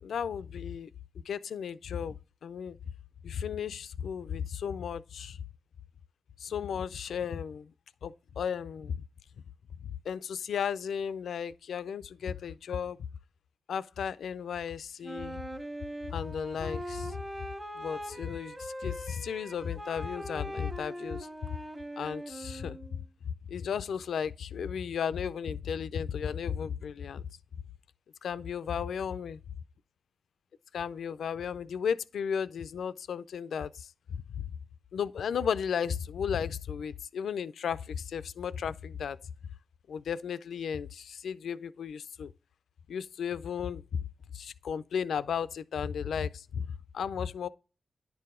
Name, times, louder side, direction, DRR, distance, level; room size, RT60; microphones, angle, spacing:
voice 1, 0.0-0.9 1.3-2.8 3.2-5.4 6.4-7.7 8.0-9.0 10.1-13.1 13.7-15.4 16.1-17.2 17.8-21.5 22.0-23.0 23.5-27.3 28.2-29.4 30.7-34.5 34.9-39.2 39.9-42.3 42.9-44.0 44.3-47.5, left 7 dB, 90° left, 0.3 m, -34 dB
Wind instrument woodwind instrument, 15.0-23.0, equal, 25° right, 1.4 m, -41 dB
10.0 x 4.7 x 3.7 m
cardioid pair, 55°, 0 cm